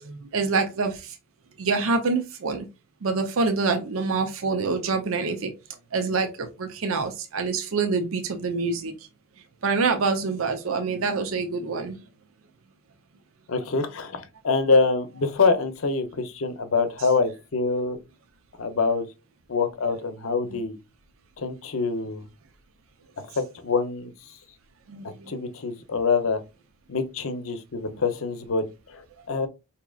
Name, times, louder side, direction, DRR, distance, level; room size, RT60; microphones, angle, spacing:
voice 1, 0.0-0.9 1.6-2.7 3.0-5.5 5.9-8.9 9.6-12.0 20.5-20.6 24.9-25.0, right 4 dB, 70° right, 0.6 m, -26 dB
voice 2, 13.5-18.0 18.6-19.1 19.5-20.8 21.4-22.2 23.4-24.1 25.0-26.4 26.9-29.5, left 4 dB, 70° left, 0.7 m, -25 dB
5.0 x 2.8 x 2.3 m
head